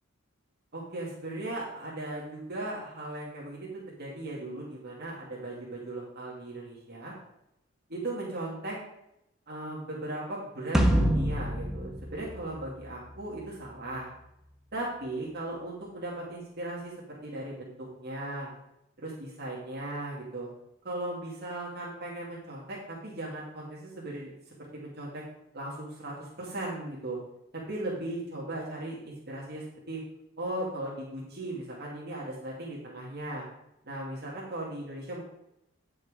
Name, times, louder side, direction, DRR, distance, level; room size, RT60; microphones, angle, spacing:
voice 1, 0.7-7.1 7.9-8.8 9.5-14.1 14.7-18.5 19.0-20.5 20.8-24.3 24.7-25.2 25.5-27.2 27.5-30.0 30.4-33.4 33.8-35.2, right 1 dB, 55° right, -4 dB, 2.3 m, -37 dB
sound 1, 10.7-13.2, equal, ahead, 1.1 m, -26 dB
9.3 x 6.4 x 5.0 m, 0.81 s
head